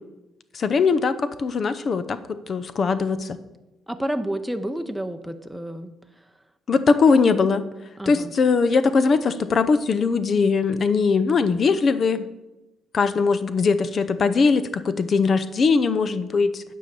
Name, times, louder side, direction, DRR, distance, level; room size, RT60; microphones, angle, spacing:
voice 1, 0.5-3.4 6.7-7.6 8.1-12.3 12.9-16.6, left 4 dB, 50° left, 13 dB, 0.6 m, -20 dB
voice 2, 3.9-5.9 8.0-8.3, right 1 dB, 5° right, 6 dB, 0.7 m, -30 dB
9.4 x 5.6 x 6.8 m, 0.99 s
cardioid pair, 90°, 0 cm